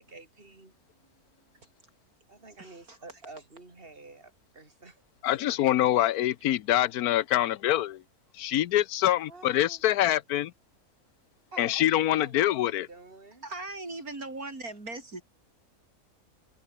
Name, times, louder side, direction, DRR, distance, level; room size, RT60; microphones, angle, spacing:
voice 1, 0.0-1.6 2.3-5.6 9.3-9.8 11.5-13.5, right 3 dB, 40° right, 4.2 m, -50 dB
voice 2, 2.6-3.0 13.4-15.2, right 2 dB, 75° right, 5.8 m, -39 dB
voice 3, 5.2-8.0 8.4-10.5 11.6-12.9, left 13 dB, 85° left, 1.2 m, -25 dB
omnidirectional pair, 1.6 m